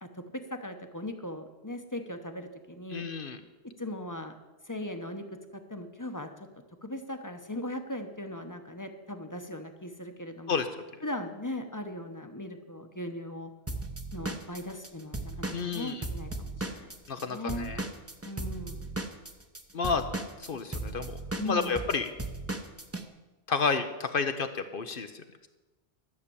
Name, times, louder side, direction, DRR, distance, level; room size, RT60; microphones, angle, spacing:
voice 1, 0.0-3.1 3.8-4.3 4.7-5.2 5.5-6.3 6.8-10.6 11.0-13.5 14.1-17.7 18.2-19.0 21.4-21.9, left 1 dB, 20° left, 6 dB, 0.9 m, -39 dB
voice 2, 2.9-3.4 10.5-10.7 15.5-16.0 17.1-17.8 19.7-20.0 20.4-21.2 21.4-22.1 23.5-25.5, left 5 dB, 60° left, 8 dB, 0.9 m, -31 dB
Drum kit / Drum, 13.7-17.2 17.5-23.0, right 2 dB, 15° right, 0.9 m, -36 dB
12.5 x 6.7 x 8.6 m, 1.2 s
omnidirectional pair, 1.1 m